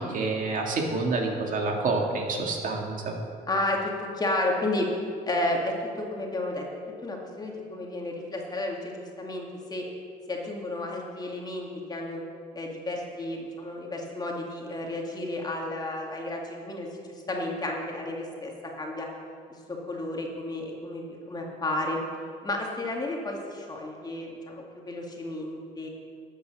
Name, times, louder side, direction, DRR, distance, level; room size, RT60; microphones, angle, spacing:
voice 1, 0.0-3.2, right 3 dB, 50° right, 1 dB, 2.0 m, -28 dB
voice 2, 3.5-4.9 5.2-6.6 7.0-9.9 10.3-12.2 12.5-18.5 18.8-19.1 19.5-22.0 22.4-25.9, left 1 dB, 25° left, -1 dB, 2.1 m, -32 dB
13.0 x 8.2 x 6.3 m, 2.2 s
cardioid pair, 110°, 17 cm